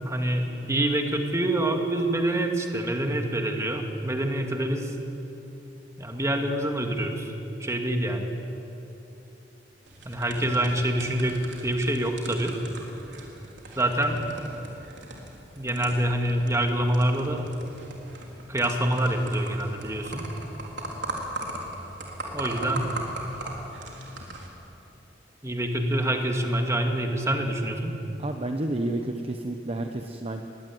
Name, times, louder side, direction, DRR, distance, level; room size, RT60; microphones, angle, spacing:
voice 1, 0.0-5.0 6.0-7.3 7.6-8.3 10.0-12.6 13.8-14.2 15.6-17.5 18.5-20.3 22.3-22.9 25.4-28.0, right 1 dB, 15° right, 3 dB, 2.1 m, -26 dB
sound 1, 9.9-24.5, right 1 dB, 85° right, 3.8 m, -39 dB
voice 2, 28.2-30.4, right 1 dB, 35° right, 4 dB, 0.9 m, -30 dB
21.5 x 17.0 x 9.5 m, 3.0 s
head